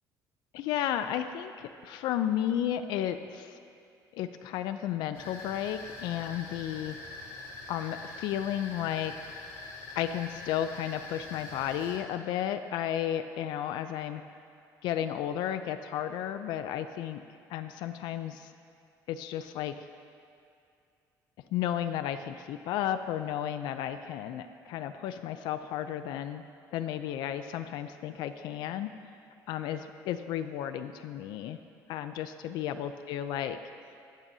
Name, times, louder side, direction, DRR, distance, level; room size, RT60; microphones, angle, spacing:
voice 1, 0.5-3.6 4.1-7.0 7.7-9.3 10.0-14.2 14.8-17.2 17.5-18.5 19.1-19.9 21.5-26.4 26.7-28.9 29.5-31.6 31.9-33.6, left 10 dB, 80° left, 9 dB, 0.4 m, -33 dB
sound 1, 5.1-12.0, left 2 dB, 55° left, 2.7 m, -44 dB
21.0 x 7.3 x 2.7 m, 2.4 s
cardioid pair, 165°, 7 cm